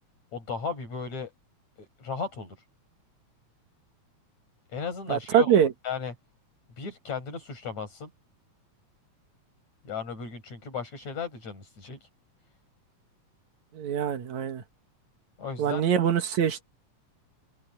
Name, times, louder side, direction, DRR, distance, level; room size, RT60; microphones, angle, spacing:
voice 1, 0.3-1.3 1.8-2.6 4.7-5.5 5.8-6.1 6.8-8.1 9.8-12.1 15.4-15.8, left 5 dB, 70° left, 7.1 m, -35 dB
voice 2, 5.1-5.7 13.7-14.6 15.6-16.6, right 8 dB, 75° right, 2.8 m, -24 dB
omnidirectional pair, 3.3 m